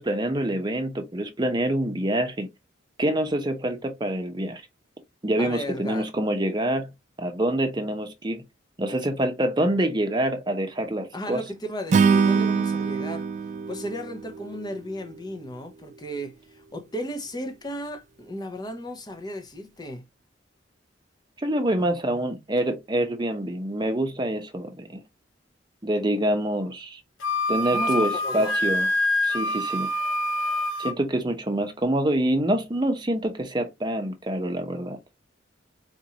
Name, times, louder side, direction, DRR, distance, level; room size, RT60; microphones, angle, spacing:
voice 1, 0.0-2.5 3.0-4.6 5.2-6.9 7.2-8.4 8.8-11.4 21.4-25.0 25.8-27.0 27.5-28.9 29.2-29.9 30.8-35.0, right 1 dB, 25° right, 0.8 m, -26 dB
voice 2, 5.4-6.1 11.1-13.3 13.7-20.1 21.8-22.4 27.7-28.6, equal, 20° left, 0.7 m, -35 dB
Acoustic guitar / Strum, 11.9-15.2, right 5 dB, 40° right, 0.3 m, -24 dB
Wind instrument woodwind instrument, 27.2-31.0, left 1 dB, 90° left, 0.7 m, -25 dB
4.4 x 2.6 x 2.8 m
head